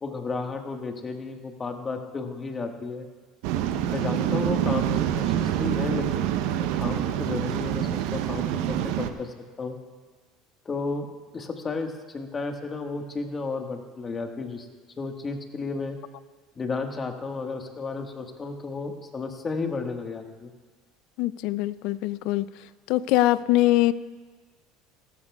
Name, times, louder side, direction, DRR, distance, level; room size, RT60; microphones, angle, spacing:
voice 1, 0.0-3.1 3.9-6.2 6.6-9.8 10.6-11.1 11.3-14.7 15.0-16.0 16.5-20.5, left 4 dB, 25° left, 4 dB, 1.5 m, -33 dB
Waves surf, 3.4-9.1, right 10 dB, 75° right, 0.7 m, -26 dB
voice 2, 21.2-22.5 22.9-23.9, left 16 dB, 70° left, 17 dB, 0.4 m, -22 dB
17.5 x 14.0 x 2.4 m, 1.4 s
supercardioid pair, 100°, 0 cm